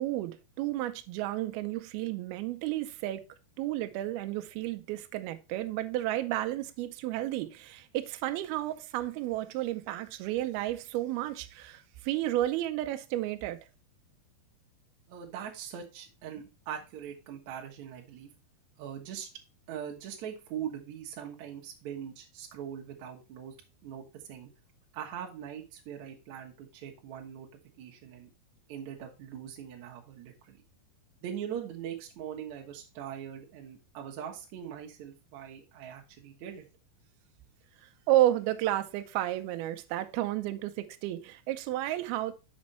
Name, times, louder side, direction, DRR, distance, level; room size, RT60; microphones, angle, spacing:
voice 1, 0.0-3.2 3.6-13.6 37.8-42.3, right 14 dB, 90° right, 2.2 m, -32 dB
voice 2, 15.1-18.3 18.8-19.3 19.7-23.5 23.8-24.5 24.9-27.5 27.8-28.3 28.7-30.6 31.2-36.6, right 9 dB, 70° right, 1.8 m, -41 dB
6.4 x 5.2 x 4.2 m
omnidirectional pair, 5.2 m